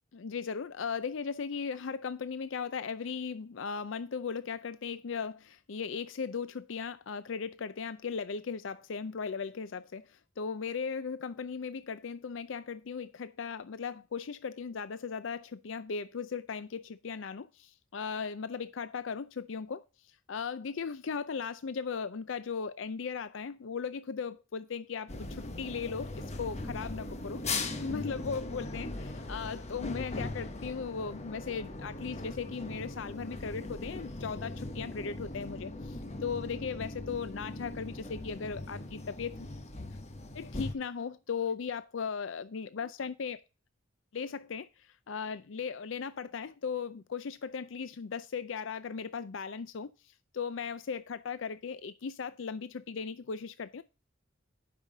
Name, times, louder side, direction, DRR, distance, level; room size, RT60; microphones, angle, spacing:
voice 1, 0.1-39.5 40.3-43.4 44.1-53.8, left 5 dB, 65° left, 0.5 m, -37 dB
sound 1, 25.1-40.7, left 2 dB, 35° left, 1.1 m, -39 dB
11.0 x 5.7 x 3.9 m
head